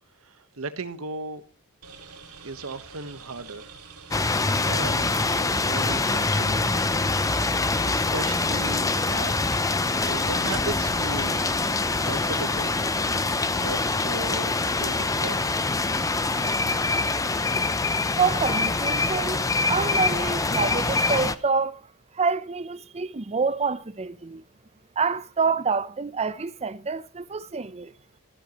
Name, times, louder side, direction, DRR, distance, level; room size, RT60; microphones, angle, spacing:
voice 1, 0.1-1.4 2.4-3.7 4.0-6.8 7.5-9.4 10.0-11.7 12.0-12.7 13.0-15.7, right 3 dB, 65° right, 1.3 m, -37 dB
sound 1, 1.8-17.8, right 4 dB, 85° right, 2.5 m, -46 dB
sound 2, 4.1-21.4, left 3 dB, 15° left, 0.6 m, -25 dB
voice 2, 18.2-21.8 22.1-24.4 25.0-27.9, right 5 dB, 30° right, 0.6 m, -27 dB
17.0 x 14.0 x 3.1 m
head